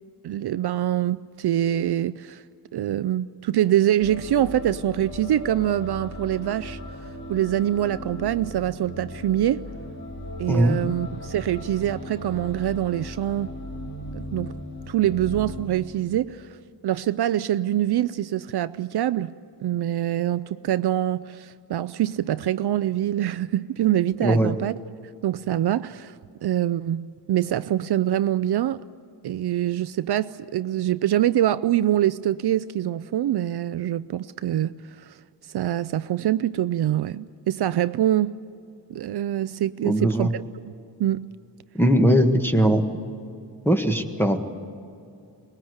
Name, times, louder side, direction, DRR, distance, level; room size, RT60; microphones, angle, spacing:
voice 1, 0.2-2.4 2.7-6.8 7.3-9.6 10.4-13.5 14.1-14.5 14.9-16.5 16.8-19.3 19.6-24.7 25.2-26.2 26.4-28.8 29.2-35.1 35.5-38.4 38.9-40.7 41.0-41.3, right 12 dB, 65° right, 0.5 m, -24 dB
sound 1, 4.0-15.7, left 1 dB, 40° left, 2.8 m, -37 dB
voice 2, 24.2-24.5 39.8-40.3 41.7-42.8 43.6-44.4, equal, 5° left, 1.5 m, -19 dB
23.5 x 20.5 x 8.0 m
wide cardioid pair, 145°, 43 cm